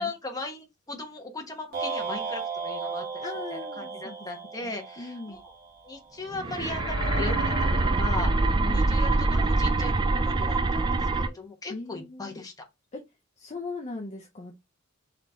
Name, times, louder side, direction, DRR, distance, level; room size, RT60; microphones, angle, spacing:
voice 1, 0.0-3.1 3.5-5.4 5.8-7.7 8.0-8.3 8.7-10.9 11.1-12.6, left 3 dB, 20° left, 1.0 m, -38 dB
sound 1, 1.7-6.0, right 5 dB, 50° right, 1.8 m, -35 dB
voice 2, 3.2-4.2 4.6-5.4 8.4-8.9 11.7-12.4 12.9-13.0 13.4-14.5, left 3 dB, 35° left, 0.7 m, -39 dB
sound 2, 6.3-11.3, right 3 dB, 20° right, 0.3 m, -24 dB
sound 3, 6.4-10.5, left 3 dB, 80° left, 1.2 m, -39 dB
3.8 x 3.1 x 3.4 m
head